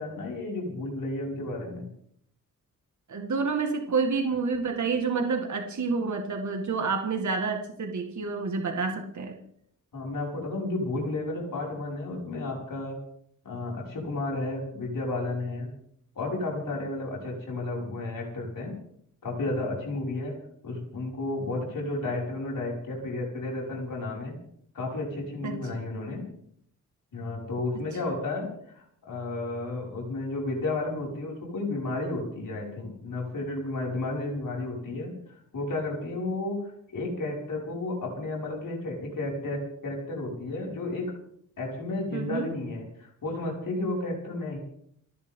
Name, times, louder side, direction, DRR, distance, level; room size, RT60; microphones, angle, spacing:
voice 1, 0.0-1.9 9.9-13.0 13.4-15.7 16.2-18.8 19.2-20.3 20.6-24.4 24.7-26.3 27.1-41.1 41.6-44.6, left 2 dB, 85° left, -2 dB, 5.9 m, -32 dB
voice 2, 3.1-9.3 25.4-25.6 42.1-42.5, right 4 dB, 60° right, 4 dB, 1.9 m, -28 dB
29.5 x 11.0 x 3.8 m, 0.68 s
wide cardioid pair, 175°, 32 cm